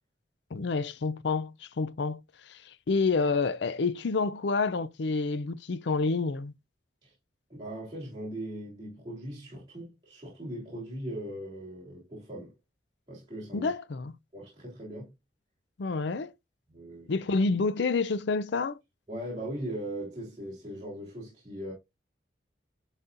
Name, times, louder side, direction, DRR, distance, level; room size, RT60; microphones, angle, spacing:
voice 1, 0.5-2.2 2.5-6.5 13.5-14.1 15.8-16.3 17.1-18.8, left 4 dB, 70° left, 0.5 m, -28 dB
voice 2, 7.5-12.5 13.1-13.7 14.3-15.1 16.7-17.1 19.1-21.7, right 1 dB, 25° right, 3.2 m, -39 dB
11.0 x 4.0 x 2.6 m
head